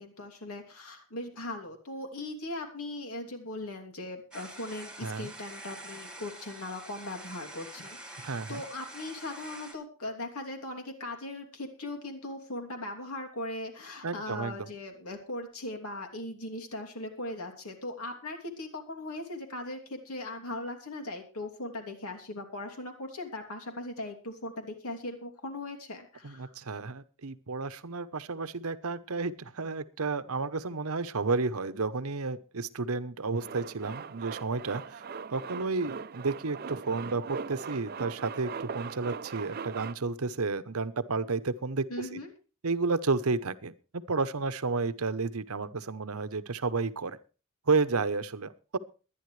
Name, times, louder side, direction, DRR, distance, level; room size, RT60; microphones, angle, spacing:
voice 1, 0.0-26.5 41.9-42.3, left 2 dB, 75° left, 3 dB, 2.9 m, -39 dB
sound 1, 4.3-9.7, right 1 dB, 5° right, 1.8 m, -46 dB
voice 2, 8.2-8.6 14.0-14.7 26.2-35.0 35.3-42.2 42.6-47.2 47.7-48.8, right 4 dB, 70° right, 14 dB, 0.9 m, -31 dB
Male speech man speaking, 33.3-39.9, right 5 dB, 45° right, 0.6 m, -40 dB
22.5 x 10.5 x 3.3 m, 0.35 s
head